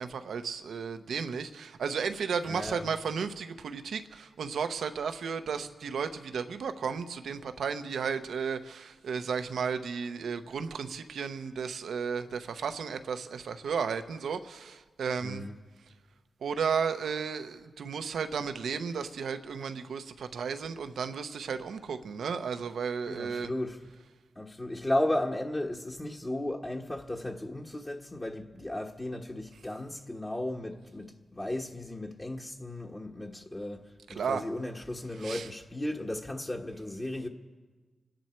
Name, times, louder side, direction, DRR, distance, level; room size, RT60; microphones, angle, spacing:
voice 1, 0.0-15.4 16.4-23.5 34.1-34.4 35.2-35.5, right 6 dB, 85° right, 0.8 m, -34 dB
voice 2, 2.4-2.9 15.2-15.6 23.1-23.9 24.3-37.3, left 1 dB, 25° left, 1.4 m, -35 dB
27.5 x 10.5 x 4.5 m
cardioid pair, 55°, 0 cm